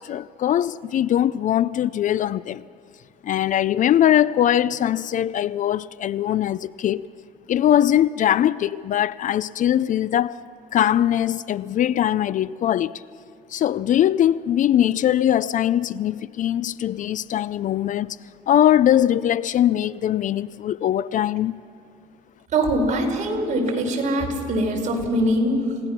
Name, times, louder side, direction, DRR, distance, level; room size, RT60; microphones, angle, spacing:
voice 1, 0.0-2.6 3.2-7.1 7.5-10.4 10.7-12.9 13.5-18.2 18.5-21.6, left 11 dB, 50° left, 0.4 m, -21 dB
voice 2, 22.5-25.8, right 1 dB, 45° right, 5.0 m, -22 dB
29.5 x 18.0 x 6.0 m
cardioid pair, 110°, 17 cm